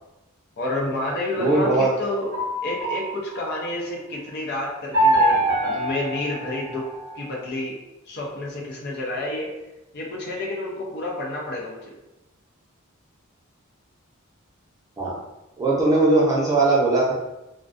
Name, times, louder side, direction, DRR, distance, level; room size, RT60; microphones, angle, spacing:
voice 1, 0.6-2.3 2.6-6.9 7.2-7.8 8.1-9.5 9.9-11.9, left 1 dB, 50° left, -2 dB, 0.6 m, -29 dB
voice 2, 1.4-1.9 15.0-15.1 15.6-17.1, right 2 dB, 15° right, -6 dB, 0.6 m, -19 dB
sound 1, 1.4-3.7 4.9-7.2, right 1 dB, 70° right, 0.6 m, -24 dB
2.2 x 2.2 x 2.5 m, 0.96 s
head